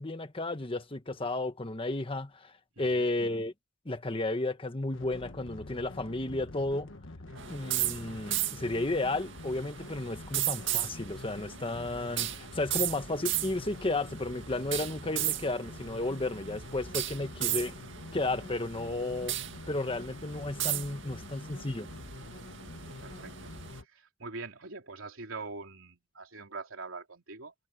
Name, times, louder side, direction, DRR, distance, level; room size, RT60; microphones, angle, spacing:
voice 1, 0.0-2.5 2.8-3.5 3.8-6.9 7.5-17.7 18.1-19.4 19.7-21.9, left 2 dB, 25° left, 1.3 m, -33 dB
voice 2, 2.7-3.1 7.3-7.6 23.0-27.5, right 3 dB, 85° right, 3.4 m, -44 dB
sound 1, 4.9-23.9, left 2 dB, 70° left, 1.5 m, -46 dB
sound 2, 7.4-23.8, right 13 dB, 65° right, 2.1 m, -36 dB
head